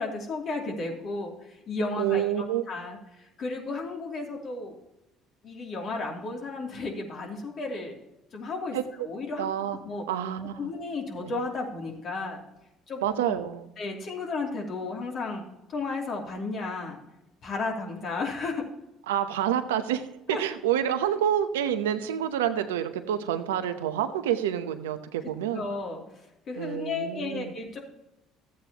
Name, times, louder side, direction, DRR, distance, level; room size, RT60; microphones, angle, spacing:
voice 1, 0.0-3.0 3.4-4.7 5.4-8.0 8.3-9.5 9.8-10.0 10.6-12.4 12.9-13.4 13.8-15.4 15.7-17.0 17.4-18.6 20.3-20.4 25.5-26.0 26.5-27.8, left 3 dB, 55° left, 0 dB, 2.7 m, -33 dB
voice 2, 2.0-2.6 8.7-8.8 9.4-9.8 10.1-10.6 13.0-13.6 19.1-20.0 20.3-25.6 26.6-27.5, right 10 dB, 90° right, 9 dB, 0.7 m, -28 dB
13.0 x 8.5 x 2.9 m, 0.92 s
hypercardioid pair, 70°, 0 cm